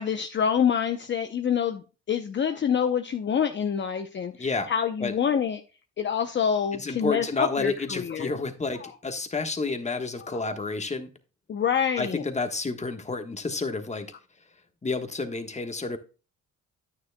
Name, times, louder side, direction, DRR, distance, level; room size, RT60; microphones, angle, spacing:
voice 1, 0.0-1.8 2.1-5.6 6.0-8.3 8.8-8.9 10.3-10.4 11.5-12.2, left 7 dB, 40° left, 7 dB, 0.7 m, -26 dB
voice 2, 4.4-4.7 5.0-5.1 6.7-11.1 12.0-14.1 14.8-16.0, left 3 dB, 25° left, 7 dB, 1.3 m, -30 dB
9.5 x 9.1 x 2.2 m, 0.32 s
cardioid pair, 90°, 30 cm